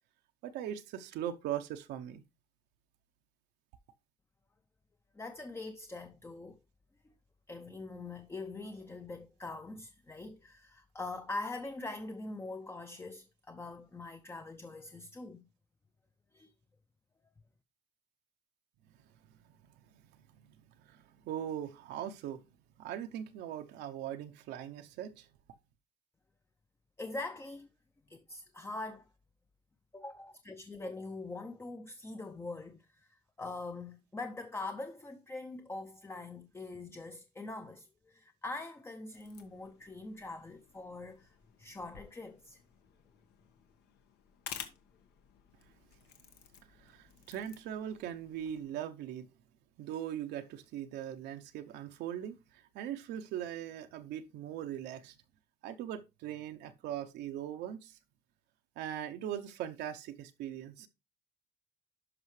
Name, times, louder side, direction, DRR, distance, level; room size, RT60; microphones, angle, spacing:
voice 1, 0.4-2.2 20.3-22.4 22.8-25.3 46.8-49.3 49.8-55.2 55.6-58.0 58.8-60.9, right 10 dB, 80° right, 0.8 m, -40 dB
voice 2, 5.1-6.6 7.0-7.1 7.5-15.5 16.3-16.5 27.0-27.7 28.1-29.1 29.9-42.6, left 2 dB, 15° left, 0.5 m, -43 dB
sound 1, 39.1-48.7, left 8 dB, 80° left, 1.4 m, -53 dB
11.0 x 5.5 x 3.2 m
cardioid pair, 110°, 17 cm